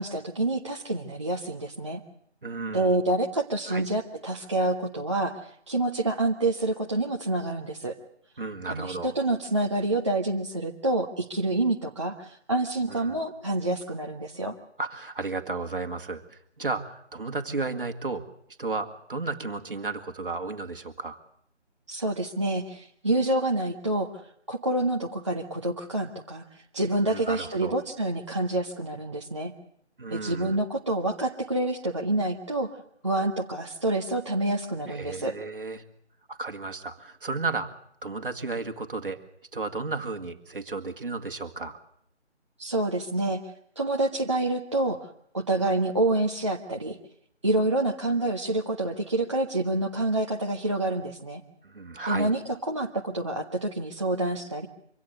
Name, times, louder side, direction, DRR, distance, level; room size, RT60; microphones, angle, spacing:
voice 1, 0.0-2.0 2.7-7.9 8.7-14.5 21.9-24.1 24.5-26.4 26.7-29.5 30.1-32.7 33.0-35.4 42.6-43.4 43.8-47.0 47.4-51.4 52.1-54.7, right 2 dB, 25° right, 0 dB, 0.9 m, -27 dB
voice 2, 2.4-3.0 3.7-3.8 8.4-9.1 12.9-13.2 14.8-18.3 18.6-21.2 27.1-27.7 30.0-30.6 34.9-35.8 36.3-37.7 38.0-39.2 39.5-41.8 51.6-52.3, right 3 dB, 50° right, 6 dB, 2.1 m, -33 dB
24.5 x 17.0 x 8.0 m, 0.69 s
figure-of-eight pair, 165°, 35 cm